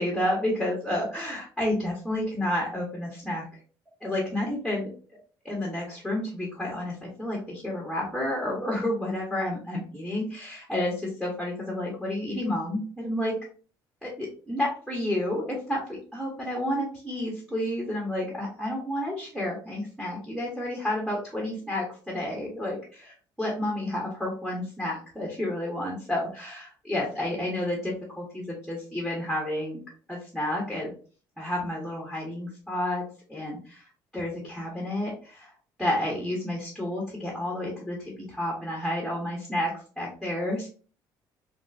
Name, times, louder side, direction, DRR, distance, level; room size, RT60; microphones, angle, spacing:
voice 1, 0.0-3.5 4.0-4.9 5.4-13.4 14.0-29.8 30.1-30.9 31.4-33.0 33.3-33.8 34.1-35.5 35.8-40.7, left 1 dB, ahead, -2 dB, 1.2 m, -30 dB
3.7 x 2.1 x 2.5 m, 0.39 s
supercardioid pair, 75°, 9 cm